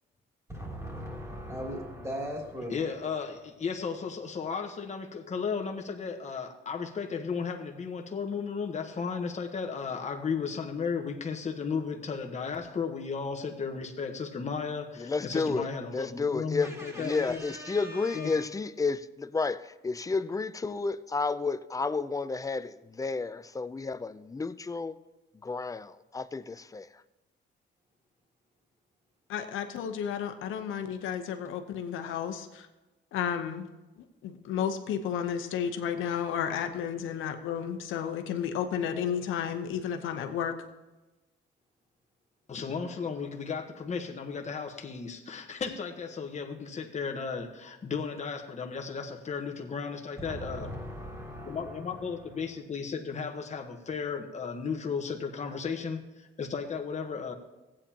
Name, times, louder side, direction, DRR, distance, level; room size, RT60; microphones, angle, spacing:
voice 1, 0.5-2.8 16.6-18.4 50.2-52.4, equal, 15° right, -1 dB, 3.0 m, -40 dB
voice 2, 2.7-17.4 18.1-18.3 42.5-50.8 51.5-57.3, left 5 dB, 35° left, 4 dB, 1.2 m, -35 dB
voice 3, 15.0-15.7 15.9-25.0 25.4-26.9, left 4 dB, 15° left, 14 dB, 0.4 m, -31 dB
voice 4, 29.3-32.7 33.1-33.7 34.2-40.5, left 8 dB, 85° left, 8 dB, 0.9 m, -32 dB
15.5 x 8.8 x 2.9 m, 1.1 s
cardioid pair, 90°, 20 cm